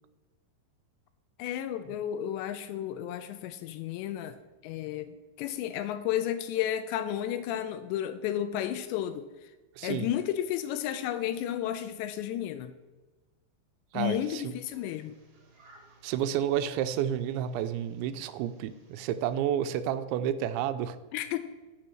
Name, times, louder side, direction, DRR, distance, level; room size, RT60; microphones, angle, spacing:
voice 1, 1.4-4.4 4.6-9.5 9.8-12.8 13.9-15.1 21.1-21.4, left 11 dB, 85° left, 11 dB, 2.6 m, -32 dB
voice 2, 9.8-10.1 13.9-14.5 16.0-21.0, right 10 dB, 85° right, 11 dB, 2.9 m, -30 dB
sound 1, 13.9-19.4, right 2 dB, 50° right, 1.9 m, -61 dB
10.0 x 6.0 x 7.7 m, 1.2 s
omnidirectional pair, 5.3 m